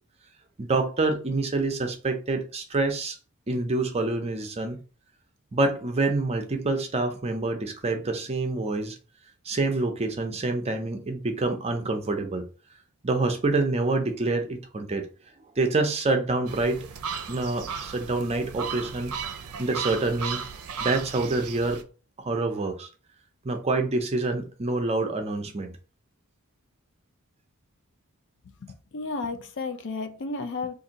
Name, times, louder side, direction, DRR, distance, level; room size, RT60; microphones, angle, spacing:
voice 1, 0.6-3.2 3.5-4.8 5.5-9.0 9.4-12.4 13.0-15.1 15.6-16.9 17.3-19.1 19.6-20.4 20.8-21.8 22.2-22.9 23.4-25.7, right 2 dB, 30° right, 0.5 m, -27 dB
sound 1, 16.5-21.8, right 6 dB, 80° right, 0.5 m, -35 dB
voice 2, 28.6-30.7, left 3 dB, 55° left, 0.4 m, -33 dB
2.7 x 2.5 x 3.9 m
head